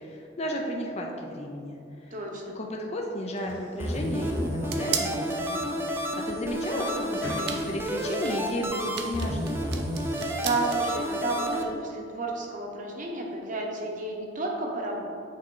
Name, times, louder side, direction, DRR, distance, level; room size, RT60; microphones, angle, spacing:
voice 1, 0.0-1.7 2.0-2.2 2.6-5.6 6.1-9.7, equal, 35° left, 0 dB, 0.5 m, -33 dB
voice 2, 2.1-2.5 10.4-15.0, right 3 dB, 45° right, 0 dB, 0.9 m, -31 dB
sound 1, 3.3-4.8 6.2-6.5 6.9-8.0, equal, 70° left, 1.2 m, -41 dB
sound 2, 3.4-10.9, right 7 dB, 60° right, 0.6 m, -39 dB
sound 3, 3.8-11.6, equal, 15° right, 0.5 m, -31 dB
8.3 x 3.7 x 3.8 m, 2.7 s
head